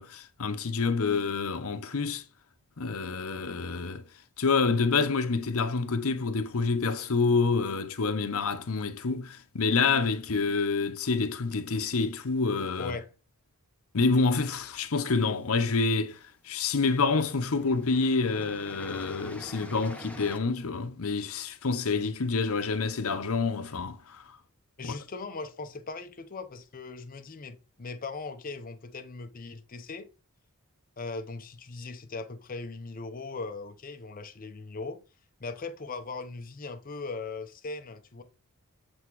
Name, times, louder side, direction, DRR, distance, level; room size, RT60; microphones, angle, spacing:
voice 1, 0.0-2.2 2.8-4.1 4.4-12.9 13.9-24.2 24.8-24.9, left 4 dB, 70° left, 0.8 m, -27 dB
sound 1, 15.0-15.9 16.7-16.9 17.2-20.4, left 1 dB, 5° left, 0.8 m, -46 dB
voice 2, 24.8-30.1 31.0-35.0 35.4-38.2, left 3 dB, 40° left, 0.8 m, -39 dB
8.0 x 3.5 x 4.7 m
head